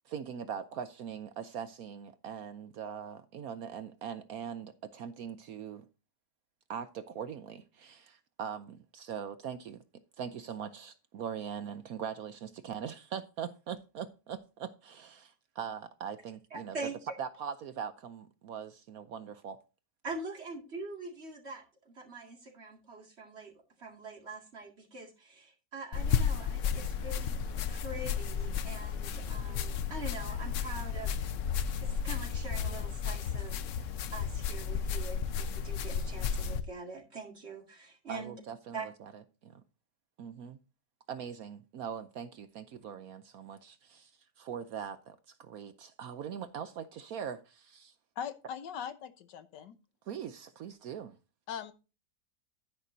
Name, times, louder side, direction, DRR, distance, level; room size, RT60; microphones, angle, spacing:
voice 1, 0.1-5.9 6.7-9.8 10.2-16.8 17.2-19.6 38.1-39.1 39.4-39.6 40.2-40.6 41.1-44.1 44.4-47.9 50.1-51.2, right 7 dB, 65° right, 1.0 m, -41 dB
voice 2, 16.5-16.9 20.0-23.5 23.8-27.4 27.7-31.1 31.8-38.3 38.7-38.9, right 3 dB, 40° right, 2.4 m, -44 dB
sound 1, 25.9-36.6, left 7 dB, 65° left, 0.8 m, -33 dB
voice 3, 48.2-49.8 51.5-51.7, left 8 dB, 90° left, 1.6 m, -40 dB
11.0 x 10.0 x 2.7 m
omnidirectional pair, 1.8 m